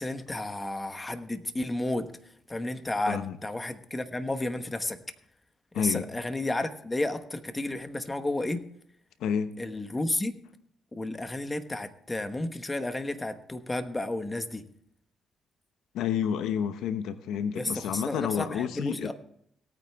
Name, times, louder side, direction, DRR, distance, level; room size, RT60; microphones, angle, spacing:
voice 1, 0.0-2.2 2.5-5.0 5.8-8.6 9.6-10.3 10.9-14.7 17.5-19.1, left 2 dB, 15° left, 9 dB, 1.2 m, -32 dB
voice 2, 5.7-6.1 9.2-9.5 15.9-19.1, left 8 dB, 85° left, 11 dB, 0.8 m, -30 dB
17.5 x 9.1 x 3.5 m, 0.69 s
cardioid pair, 90°, 0 cm